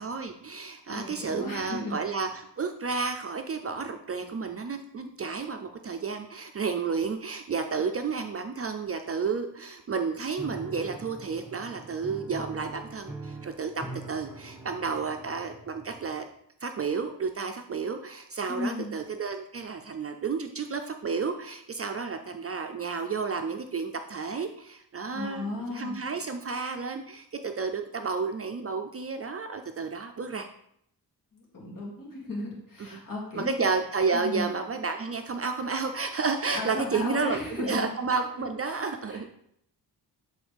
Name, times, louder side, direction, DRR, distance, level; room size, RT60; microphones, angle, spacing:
voice 1, 0.0-16.2 16.6-30.5 32.9-33.0 33.4-39.3, right 5 dB, 35° right, 6 dB, 0.4 m, -31 dB
voice 2, 0.9-2.0 18.5-18.9 25.1-26.0 31.3-33.6 34.1-34.5 36.5-37.9 39.0-39.3, left 2 dB, 50° left, -4 dB, 2.6 m, -35 dB
Piano, 10.4-16.3, right 3 dB, 5° right, 1.0 m, -43 dB
8.0 x 3.9 x 3.4 m, 0.72 s
cardioid pair, 95°, 41 cm